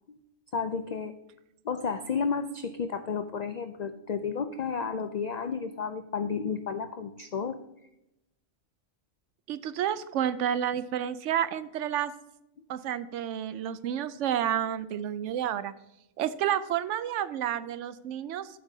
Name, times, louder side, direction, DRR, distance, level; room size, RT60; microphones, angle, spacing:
voice 1, 0.5-1.1 1.6-7.6, left 5 dB, 75° left, 9 dB, 0.3 m, -32 dB
voice 2, 9.5-12.1 12.7-15.7 16.2-18.5, right 10 dB, 75° right, 14 dB, 0.9 m, -30 dB
12.5 x 7.7 x 2.7 m, 0.88 s
omnidirectional pair, 1.3 m